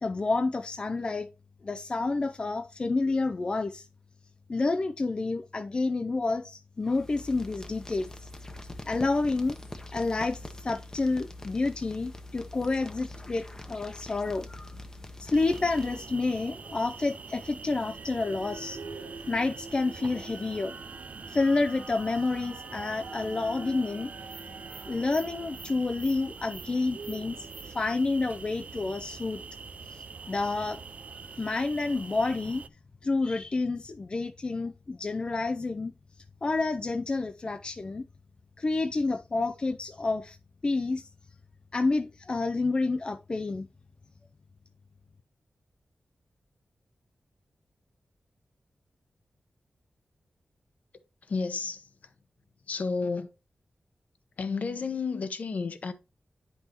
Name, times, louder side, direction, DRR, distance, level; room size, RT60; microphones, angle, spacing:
voice 1, 0.0-1.3 1.6-3.9 4.5-8.1 8.9-9.6 9.9-14.5 15.2-18.8 19.3-20.7 21.3-24.1 24.9-29.4 29.9-30.8 31.3-32.6 33.0-35.9 36.4-38.0 38.6-40.4 40.6-41.1 41.7-43.7, left 3 dB, 35° left, 0.5 m, -29 dB
sound 1, 6.8-16.2, left 1 dB, 20° left, 0.9 m, -44 dB
sound 2, 15.3-32.7, right 5 dB, 55° right, 0.5 m, -44 dB
sound 3, 17.7-27.2, right 3 dB, 75° right, 0.8 m, -47 dB
voice 2, 51.2-52.1 52.7-53.3 54.4-55.9, left 4 dB, 60° left, 0.9 m, -32 dB
9.7 x 5.4 x 2.9 m
wide cardioid pair, 125°, 3 cm